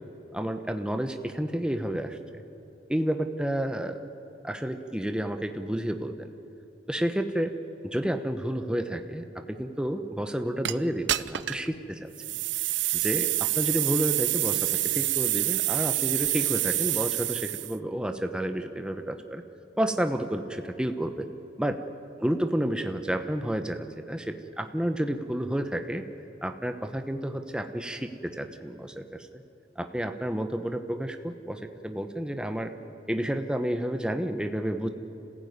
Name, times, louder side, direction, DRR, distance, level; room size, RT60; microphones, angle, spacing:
voice 1, 0.3-2.4 2.9-4.0 4.4-6.3 6.9-7.5 7.8-12.1 12.9-19.4 19.8-21.3 21.6-21.8 22.2-26.0 26.4-29.3 29.8-32.7 33.1-34.9, right 1 dB, 5° right, 7 dB, 0.9 m, -30 dB
sound 1, 10.6-10.7 11.1-11.7 12.2-17.8, right 16 dB, 85° right, 0.6 m, -27 dB
27.0 x 15.5 x 9.5 m, 3.0 s
head